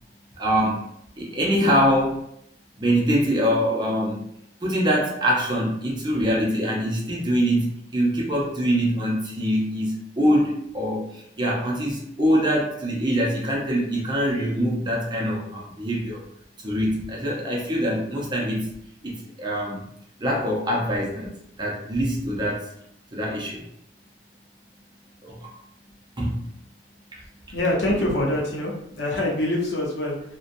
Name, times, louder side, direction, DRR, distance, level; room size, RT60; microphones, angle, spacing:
voice 1, 0.4-0.8 1.2-2.2 2.8-4.2 4.6-16.2 16.6-18.7 19.0-19.8 20.2-21.3 21.6-22.7 23.1-23.6 25.2-25.5 26.2-26.5 27.1-27.2, equal, 25° right, -3 dB, 0.6 m, -24 dB
voice 2, 27.5-30.4, left 1 dB, 70° left, -2 dB, 0.7 m, -25 dB
2.7 x 2.2 x 2.5 m, 0.72 s
head